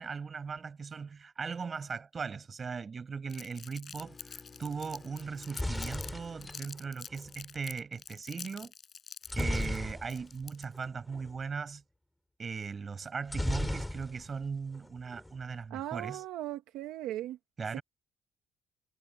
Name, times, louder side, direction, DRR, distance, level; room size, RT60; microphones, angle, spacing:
voice 1, 0.0-8.7 9.4-11.8 12.4-16.2 17.6-17.8, right 5 dB, 35° right, 7.1 m, -38 dB
Crumpling crinkling, 3.3-6.1 6.4-10.8, left 7 dB, 45° left, 4.8 m, -47 dB
sound 1, 3.9-7.0, left 4 dB, 25° left, 3.7 m, -54 dB
sound 2, 5.2-7.3 9.3-10.4 10.7-10.9 11.1-11.4 13.3-14.4 14.7-15.4, left 1 dB, 5° left, 4.3 m, -35 dB
voice 2, 15.7-17.4 17.7-17.8, right 14 dB, 85° right, 1.4 m, -38 dB
cardioid pair, 95°, 0 cm